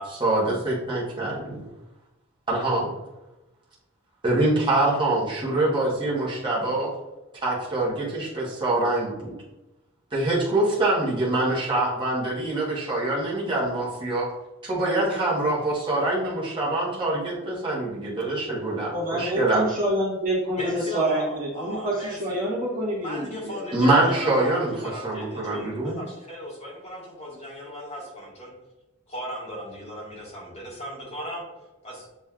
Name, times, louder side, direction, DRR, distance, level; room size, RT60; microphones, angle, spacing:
voice 1, 0.2-1.6 2.5-2.9 4.2-6.9 7.4-9.3 10.1-14.2 14.6-19.6 23.7-24.7 25.0-26.0, right 2 dB, 20° right, -6 dB, 1.2 m, -24 dB
voice 2, 18.8-23.6, right 1 dB, 40° right, -6 dB, 1.3 m, -27 dB
voice 3, 20.6-22.5 23.0-28.5 29.1-31.4 31.8-32.1, equal, 30° left, -5 dB, 1.6 m, -37 dB
7.1 x 3.1 x 2.4 m, 1.0 s
head